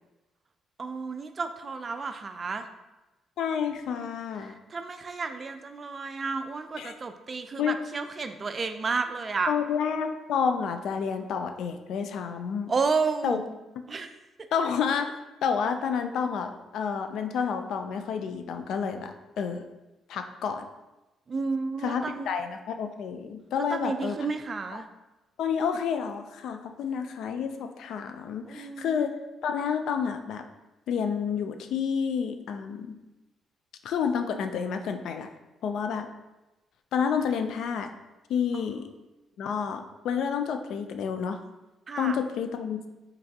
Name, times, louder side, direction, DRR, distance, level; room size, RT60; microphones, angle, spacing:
voice 1, 0.8-2.7 4.5-9.5 12.7-13.5 13.9-14.2 21.3-22.3 23.6-24.9 28.5-29.1 38.5-38.7 41.9-42.2, right 4 dB, 40° right, 8 dB, 0.3 m, -31 dB
voice 2, 3.4-4.6 6.8-6.9 7.6-7.8 9.5-12.7 13.2-13.4 14.5-15.1 15.4-19.6 20.1-20.6 21.8-24.2 24.7-24.8 25.4-29.1 29.4-30.5 30.9-32.9 33.8-35.3 35.6-36.1 36.9-37.9 38.3-38.9 39.4-41.4 42.0-42.9, left 7 dB, 75° left, 7 dB, 0.3 m, -29 dB
3.9 x 3.3 x 2.7 m, 1.0 s
cardioid pair, 90°, 0 cm